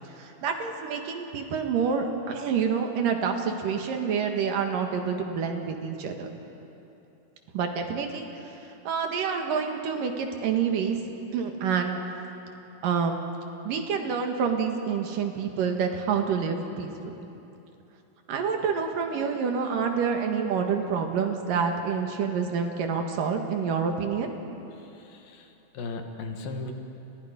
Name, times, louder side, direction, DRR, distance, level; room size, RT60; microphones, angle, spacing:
voice 1, 0.2-6.3 7.5-8.4 8.8-11.0 11.3-12.0 12.8-13.2 13.6-17.1 18.3-24.3, right 6 dB, 75° right, 4 dB, 3.4 m, -27 dB
voice 2, 25.0-25.5 25.7-26.7, left 3 dB, 85° left, 4 dB, 3.7 m, -36 dB
30.0 x 28.5 x 5.2 m, 2.9 s
omnidirectional pair, 3.9 m